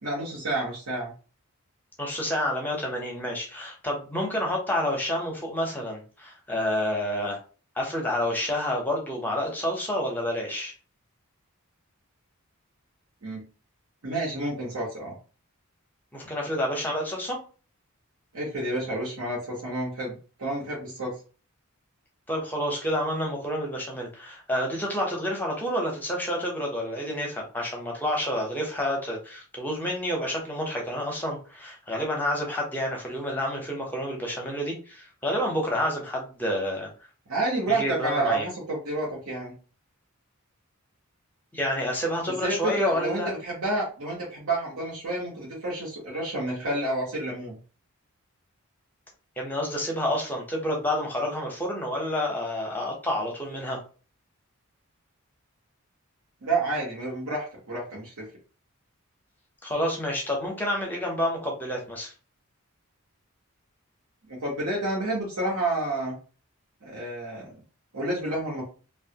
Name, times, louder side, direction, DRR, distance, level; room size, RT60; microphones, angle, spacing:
voice 1, 0.0-1.1 13.2-13.4 14.0-15.2 18.3-21.2 37.3-39.5 42.3-47.6 56.4-58.3 64.3-66.1 66.8-67.6 67.9-68.6, right 2 dB, 75° right, -5 dB, 1.0 m, -29 dB
voice 2, 2.0-7.4 7.8-10.7 16.1-17.4 22.3-36.9 37.7-38.5 41.5-43.3 49.4-53.8 59.6-62.1, left 1 dB, 10° left, 0 dB, 0.7 m, -29 dB
3.0 x 2.3 x 2.8 m, 0.37 s
head